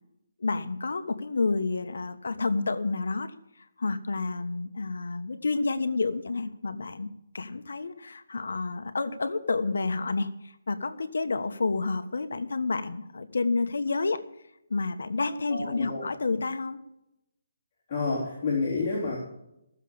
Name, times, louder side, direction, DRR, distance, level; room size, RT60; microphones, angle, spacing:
voice 1, 0.4-3.3 3.8-7.1 7.3-10.3 10.7-14.2 14.7-16.8, left 3 dB, 80° left, 9 dB, 1.4 m, -29 dB
voice 2, 15.5-16.1 17.9-19.2, left 4 dB, 20° left, -9 dB, 3.6 m, -29 dB
15.5 x 7.3 x 7.1 m, 0.84 s
hypercardioid pair, 175°, 0 cm